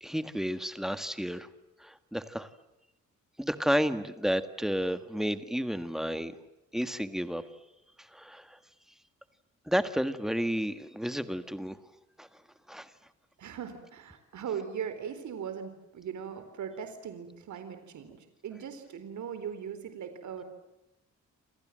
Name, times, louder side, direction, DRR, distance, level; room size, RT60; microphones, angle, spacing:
voice 1, 0.0-1.5 1.8-2.5 3.4-6.3 6.7-7.4 8.0-8.6 9.7-11.8 12.2-12.3 12.7-12.9, equal, ahead, 10 dB, 1.6 m, -31 dB
voice 2, 13.4-20.4, right 8 dB, 70° right, 9 dB, 4.1 m, -39 dB
28.5 x 27.5 x 7.6 m, 0.91 s
wide cardioid pair, 165°, 30 cm